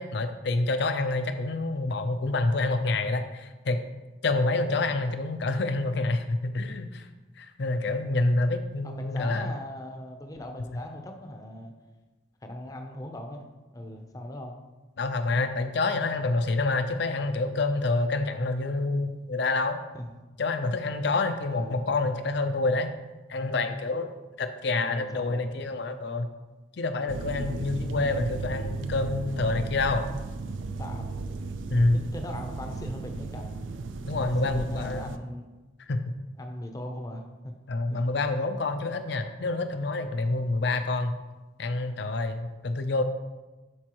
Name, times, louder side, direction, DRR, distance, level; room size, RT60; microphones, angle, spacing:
voice 1, 0.0-3.8 4.2-7.1 7.4-9.5 15.0-19.8 20.4-22.9 23.3-24.1 24.4-26.3 26.8-30.1 31.7-32.0 34.1-35.1 35.9-36.0 37.7-41.1 41.6-43.0, left 2 dB, 60° left, 8 dB, 0.5 m, -27 dB
voice 2, 4.7-5.1 8.8-11.7 12.4-13.4 13.7-14.5 19.9-20.1 21.5-21.8 24.8-25.5 30.8-31.1 31.9-33.5 34.1-35.5 36.4-37.5 37.9-38.0, left 1 dB, 20° left, 3 dB, 0.6 m, -39 dB
sound 1, 27.1-35.2, right 3 dB, 80° right, 0.4 m, -35 dB
11.0 x 4.4 x 3.0 m, 1.2 s
head